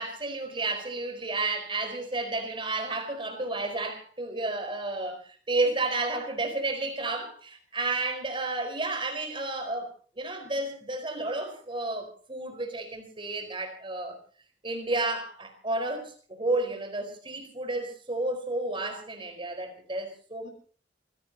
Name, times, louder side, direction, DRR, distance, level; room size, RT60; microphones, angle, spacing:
voice 1, 0.0-9.9 10.2-14.2 14.6-20.5, right 2 dB, 30° right, 4.7 m, -31 dB
27.5 x 17.0 x 2.9 m
head